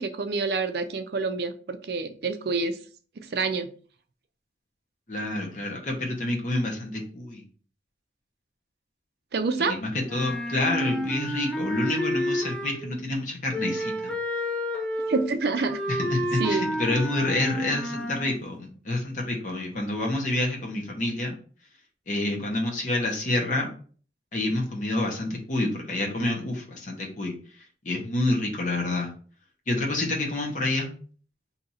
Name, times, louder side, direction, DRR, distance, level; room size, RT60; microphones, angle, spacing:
voice 1, 0.0-2.8 3.2-3.7 9.3-9.8 14.9-15.8 16.4-16.7, right 4 dB, 60° right, 8 dB, 0.4 m, -27 dB
voice 2, 5.1-7.4 9.7-14.1 15.9-21.3 22.1-23.7 24.3-27.3 27.8-29.1 29.7-30.9, left 2 dB, 45° left, 1 dB, 0.9 m, -28 dB
Wind instrument woodwind instrument, 10.0-13.0 13.5-18.4, equal, 5° left, 0.5 m, -30 dB
2.8 x 2.5 x 4.1 m, 0.42 s
head